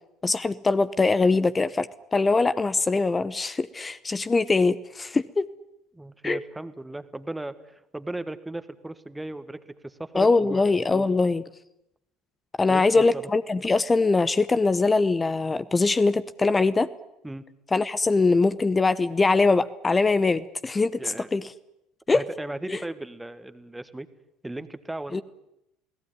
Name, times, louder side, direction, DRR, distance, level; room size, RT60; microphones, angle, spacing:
voice 1, 0.2-5.5 6.2-6.4 10.1-11.4 12.6-16.9 17.7-21.4 22.1-22.2 22.7-22.8 25.1-25.2, left 3 dB, 20° left, 15 dB, 0.9 m, -22 dB
voice 2, 5.9-11.1 12.7-13.3 17.2-17.4 21.0-21.3 22.1-24.1 24.4-25.2, right 2 dB, 10° right, 12 dB, 1.8 m, -36 dB
29.0 x 18.0 x 9.7 m, 0.86 s
figure-of-eight pair, 65°, 0 cm